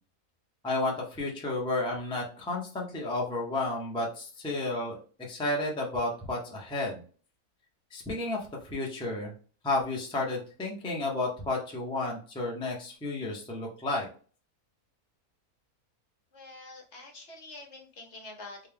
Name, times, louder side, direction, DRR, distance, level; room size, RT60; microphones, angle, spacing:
voice 1, 0.6-5.0 5.3-7.0 7.9-9.3 9.6-14.1, left 2 dB, 5° left, -3 dB, 0.5 m, -32 dB
voice 2, 16.3-18.7, left 2 dB, 55° left, 1 dB, 1.1 m, -46 dB
3.8 x 2.4 x 3.4 m, 0.41 s
omnidirectional pair, 1.6 m